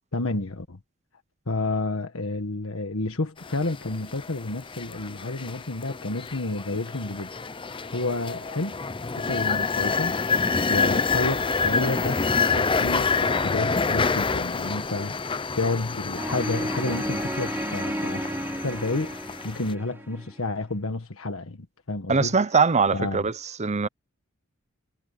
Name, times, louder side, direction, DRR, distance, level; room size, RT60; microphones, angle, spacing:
voice 1, 0.1-0.8 1.5-7.3 7.9-8.7 9.0-10.1 10.7-18.3 18.6-19.1 19.4-22.3 22.9-23.2, left 2 dB, 70° left, 1.6 m, -30 dB
sound 1, 3.4-19.7, left 4 dB, 25° left, 0.6 m, -28 dB
sound 2, 16.1-20.3, right 1 dB, 10° right, 4.9 m, -32 dB
voice 2, 22.1-23.3 23.6-23.9, right 5 dB, 30° right, 0.7 m, -21 dB
head